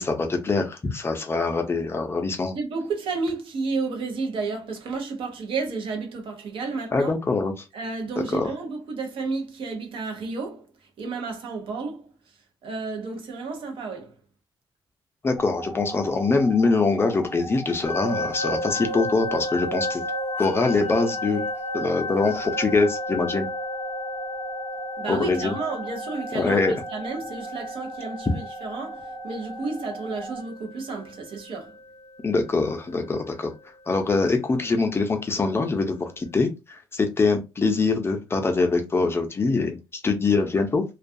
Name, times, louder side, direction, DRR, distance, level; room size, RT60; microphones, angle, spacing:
voice 1, 0.0-2.5 6.9-7.6 8.3-8.5 15.2-20.0 20.4-21.4 21.7-23.5 25.1-25.5 26.3-26.7 28.3-28.4 32.2-33.5 33.9-40.8, left 3 dB, 25° left, 0.5 m, -23 dB
voice 2, 2.5-7.1 7.7-10.7 11.0-12.1 12.6-14.1 25.0-26.6 26.9-31.7, right 4 dB, 75° right, 0.7 m, -31 dB
sound 1, 15.4-30.4, right 2 dB, 35° right, 0.5 m, -38 dB
sound 2, 17.8-32.7, left 1 dB, 75° left, 0.7 m, -33 dB
2.3 x 2.3 x 2.6 m
cardioid pair, 115°, 9 cm